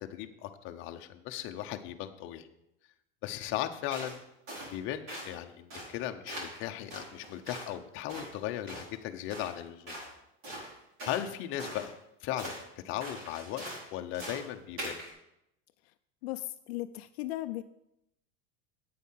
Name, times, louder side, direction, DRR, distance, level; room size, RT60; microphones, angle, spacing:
voice 1, 0.0-2.5 3.2-4.2 4.7-10.0 11.1-11.9 12.2-13.6 13.9-15.0, left 12 dB, 40° left, 6 dB, 0.9 m, -37 dB
sound 1, 3.9-4.2 4.5-4.7 5.1-5.3 5.7-5.9 6.3-6.6 6.9-7.7 8.1-8.3 8.7-8.9 9.3-9.6 9.9-10.1 10.4-11.3 11.6-11.9 12.4-12.6 13.0-13.8 14.1-14.5 14.8-15.1, right 1 dB, 40° right, 4.7 m, -42 dB
voice 2, 16.2-17.6, left 16 dB, 75° left, 9 dB, 0.6 m, -37 dB
8.7 x 8.2 x 5.7 m, 0.83 s
supercardioid pair, 155°, 32 cm